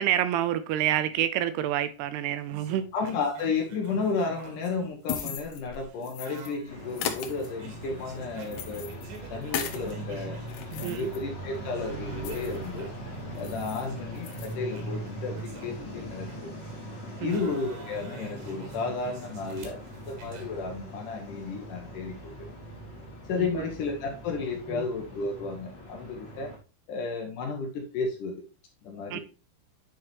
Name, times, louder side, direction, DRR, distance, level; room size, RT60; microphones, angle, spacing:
voice 1, 0.0-2.8 10.8-11.1 17.2-17.4 23.4-23.7 24.7-24.8 29.1-29.2, right 11 dB, 80° right, 2.6 m, -28 dB
sound 1, 2.5-11.2 11.5-16.8 17.3-20.5, right 4 dB, 60° right, 3.2 m, -47 dB
voice 2, 2.9-9.0 9.3-10.4 10.8-12.9 13.3-16.5 17.2-22.4 23.3-26.5 26.9-28.4 28.8-29.2, left 4 dB, 65° left, 2.2 m, -33 dB
sound 2, 4.7-6.5 6.9-9.9 10.3-12.7 13.0-13.1 13.4-13.9 14.2-14.6, left 9 dB, 85° left, 1.6 m, -38 dB
sound 3, 6.7-26.6, right 1 dB, 20° left, 2.2 m, -41 dB
9.3 x 4.7 x 3.1 m
omnidirectional pair, 4.7 m